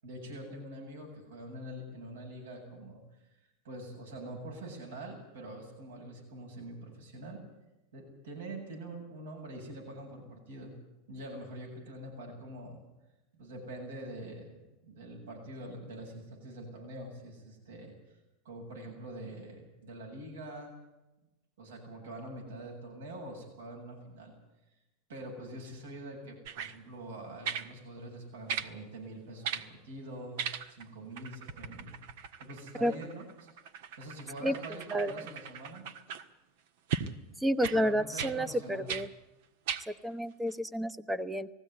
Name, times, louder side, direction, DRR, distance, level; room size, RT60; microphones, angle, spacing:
voice 1, 0.0-3.0 3.6-7.4 7.9-10.7 11.1-12.8 13.4-18.2 18.4-20.7 21.6-24.3 25.1-30.4 30.7-31.9 32.4-33.5 34.0-35.8 37.6-38.9, right 1 dB, 90° right, 0 dB, 7.9 m, -44 dB
sound 1, 26.4-26.8 27.4-27.7 28.5-28.7 29.4-29.7 30.4-30.9 31.2-36.3 36.9-37.1 37.6-37.8 38.2-38.4 38.9-39.1 39.7-39.9 40.5-40.6, right 7 dB, 70° right, 1.6 m, -38 dB
voice 2, 34.9-35.3 37.4-39.1 39.9-41.5, equal, 5° right, 14 dB, 1.0 m, -30 dB
20.0 x 16.0 x 9.4 m, 0.98 s
hypercardioid pair, 115°, 0 cm